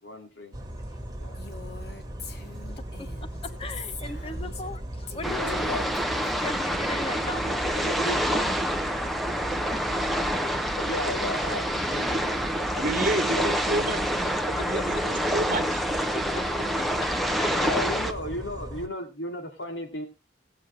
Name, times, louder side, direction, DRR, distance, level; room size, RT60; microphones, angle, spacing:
voice 1, 0.0-0.6 1.2-1.4 5.3-5.9 7.8-8.5 10.6-13.1 13.3-13.8 16.3-16.6 17.5-20.1, left 1 dB, 85° left, 2.7 m, -35 dB
sound 1, 0.5-18.9, right 1 dB, 20° right, 1.7 m, -38 dB
Female speech woman speaking, 1.3-4.8 5.1-6.9, left 5 dB, 60° left, 1.1 m, -44 dB
voice 2, 3.6-5.8 6.4-7.8 10.8-10.9 11.1-11.6 12.3-12.4 14.5-14.6 16.3-16.9 17.4-17.9, left 2 dB, 30° left, 1.0 m, -38 dB
sound 2, 5.2-18.1, equal, ahead, 0.9 m, -27 dB
voice 3, 12.8-14.0 14.6-15.8, right 2 dB, 50° right, 1.7 m, -29 dB
19.0 x 7.3 x 3.3 m
head